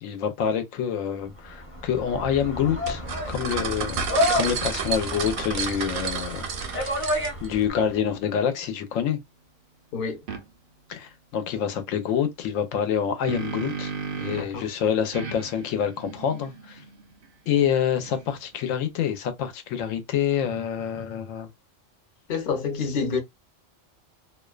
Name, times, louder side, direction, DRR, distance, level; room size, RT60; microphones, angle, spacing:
voice 1, 0.0-3.0 3.3-4.1 4.3-9.2 10.9-13.9 14.2-16.8 17.5-21.5, left 8 dB, 90° left, 1.0 m, -27 dB
sound 1, 1.5-7.8, left 1 dB, 15° left, 0.6 m, -30 dB
sound 2, 2.9-7.5, right 6 dB, 90° right, 1.0 m, -31 dB
sound 3, 10.3-10.4 12.8-14.6 15.1-18.5, right 5 dB, 60° right, 0.6 m, -36 dB
voice 2, 14.3-14.7 22.3-23.2, left 5 dB, 50° left, 0.8 m, -28 dB
2.5 x 2.2 x 2.2 m
omnidirectional pair, 1.3 m